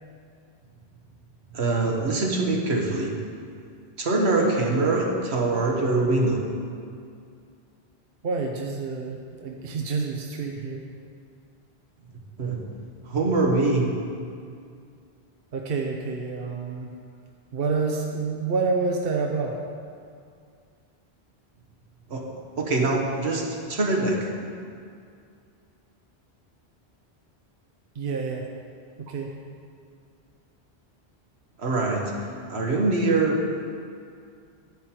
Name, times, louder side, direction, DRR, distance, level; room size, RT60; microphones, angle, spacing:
voice 1, 1.5-3.1 4.0-6.5 12.4-12.6 13.0-13.9 22.1-22.3 22.6-24.3 31.6-32.1 32.5-33.4, right 2 dB, 85° right, 0 dB, 1.6 m, -23 dB
voice 2, 8.2-10.8 15.5-16.9 17.5-19.6 27.9-28.5 29.0-29.3, right 4 dB, 65° right, 1 dB, 1.0 m, -28 dB
11.0 x 9.2 x 4.4 m, 2.3 s
omnidirectional pair, 1.1 m